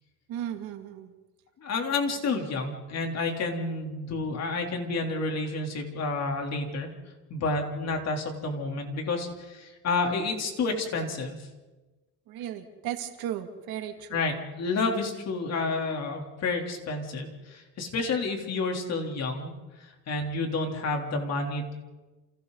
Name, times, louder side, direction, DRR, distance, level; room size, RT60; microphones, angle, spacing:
voice 1, 0.3-1.1 2.1-2.2 12.3-14.3, right 10 dB, 70° right, 4 dB, 2.7 m, -36 dB
voice 2, 1.6-6.9 7.3-11.4 14.1-19.5 19.8-21.7, left 3 dB, 45° left, 2 dB, 3.6 m, -30 dB
29.5 x 29.0 x 4.1 m, 1.2 s
cardioid pair, 165°, 37 cm